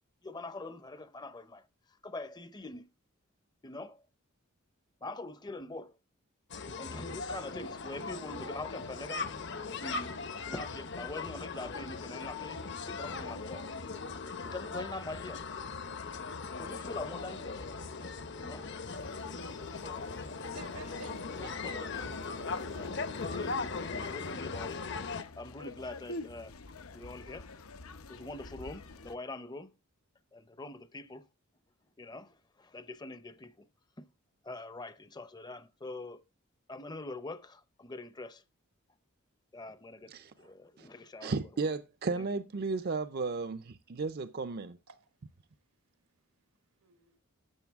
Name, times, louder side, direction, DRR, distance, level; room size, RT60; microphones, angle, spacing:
voice 1, 0.2-1.6 2.0-2.9 3.6-4.0 5.0-5.9 6.8-9.3 9.8-10.1 10.5-13.7 14.4-15.4 16.6-17.6 18.4-18.7 19.8-20.1 21.4-24.8 25.4-26.5 26.9-27.5 28.1-29.7 30.3-31.3 32.0-33.5 34.0-34.1 34.4-36.2 36.7-38.4 39.5-41.3 42.1-42.3, left 2 dB, 20° left, 0.6 m, -44 dB
sound 1, 6.5-25.2, left 4 dB, 55° left, 0.8 m, -39 dB
sound 2, 18.9-29.2, left 3 dB, 85° left, 0.8 m, -47 dB
voice 2, 20.5-22.3 23.3-23.5 44.9-45.0 46.8-47.2, right 4 dB, 85° right, 1.3 m, -50 dB
voice 3, 41.2-44.7, right 4 dB, 45° right, 0.5 m, -34 dB
12.0 x 7.8 x 3.5 m
head